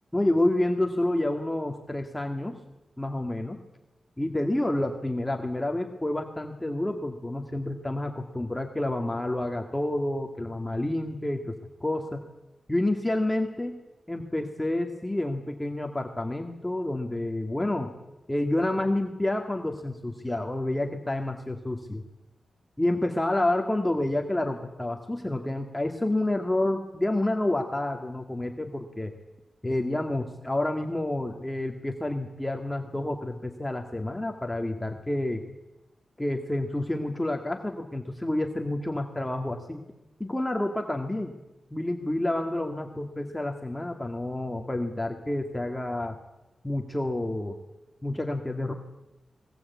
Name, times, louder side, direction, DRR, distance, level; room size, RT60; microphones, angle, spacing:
voice 1, 0.1-2.6 3.0-3.6 4.2-11.6 11.8-12.2 12.7-13.8 14.1-17.9 18.3-22.0 22.8-29.1 29.6-35.4 36.2-39.8 40.2-41.3 41.7-46.2 46.6-47.6 48.0-48.7, left 1 dB, 10° left, 3 dB, 2.0 m, -29 dB
21.5 x 20.0 x 8.4 m, 0.98 s
wide cardioid pair, 90°, 0 cm